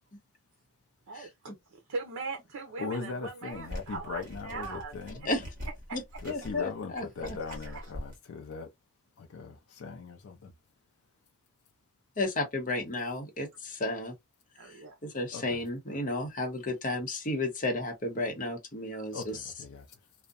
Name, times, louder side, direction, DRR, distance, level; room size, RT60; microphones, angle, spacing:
voice 1, 1.1-4.9 5.9-6.0 7.5-7.9 14.6-15.0 18.9-19.0, right 4 dB, 80° right, 0.6 m, -40 dB
voice 2, 2.8-5.3 6.2-8.7 9.2-10.5 15.3-15.6 19.1-19.9, left 4 dB, 65° left, 0.4 m, -39 dB
sound 1, 3.5-8.2, equal, 35° right, 1.3 m, -43 dB
voice 3, 6.3-7.4 12.2-14.1 14.7-14.8 15.0-19.4, left 2 dB, 35° left, 0.7 m, -33 dB
2.6 x 2.1 x 2.4 m
head